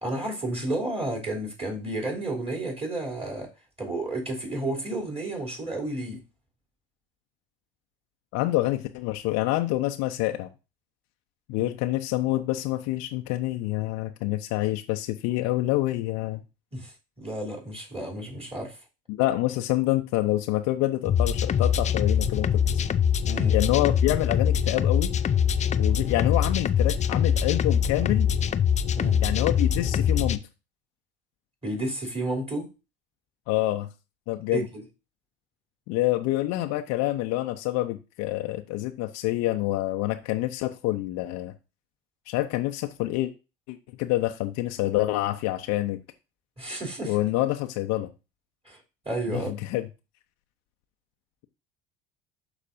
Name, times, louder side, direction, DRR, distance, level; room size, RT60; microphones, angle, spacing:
voice 1, 0.0-3.5 3.8-6.2 11.6-11.7 16.7-18.8 23.3-23.6 29.0-29.2 31.6-32.7 34.5-34.8 46.6-47.2 48.6-48.8 49.0-49.5, right 2 dB, 20° right, 3.0 m, -31 dB
voice 2, 8.3-10.5 11.5-16.4 19.1-22.8 23.5-25.1 25.8-28.3 29.2-30.4 33.5-33.9 34.3-34.7 35.9-41.5 42.3-43.3 43.7-46.0 47.1-48.1 49.3-49.9, left 16 dB, 60° left, 0.7 m, -27 dB
sound 1, 21.0-30.4, left 8 dB, 25° left, 0.5 m, -23 dB
12.0 x 4.1 x 2.6 m
hypercardioid pair, 70°, 30 cm